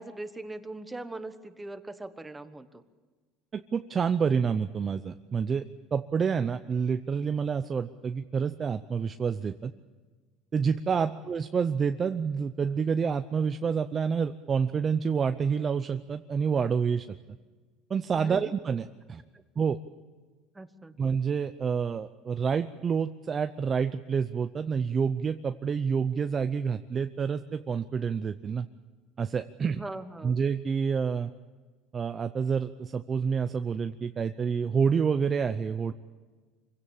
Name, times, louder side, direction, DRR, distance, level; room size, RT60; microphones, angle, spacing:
voice 1, 0.0-2.8 10.9-11.2 18.2-18.5 20.5-21.0 29.7-30.4, right 2 dB, 10° right, 10 dB, 1.3 m, -40 dB
voice 2, 3.5-5.7 5.9-9.7 10.5-17.2 17.9-19.2 19.6-19.8 21.0-28.7 29.2-29.8 30.2-31.3 31.9-35.9, right 6 dB, 25° right, 9 dB, 0.6 m, -28 dB
25.0 x 16.5 x 8.7 m, 1.4 s
cardioid pair, 130°, 0 cm